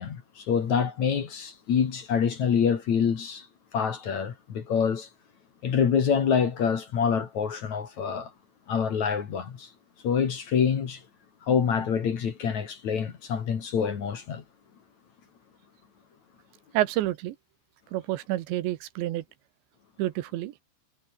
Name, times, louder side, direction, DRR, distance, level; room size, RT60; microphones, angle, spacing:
voice 1, 0.0-3.5 3.7-5.1 5.6-8.3 8.7-9.7 10.0-11.0 11.5-14.4, left 7 dB, 50° left, 3.0 m, -26 dB
voice 2, 16.7-17.4 17.9-19.2 20.0-20.5, right 15 dB, 85° right, 3.5 m, -28 dB
omnidirectional pair, 5.1 m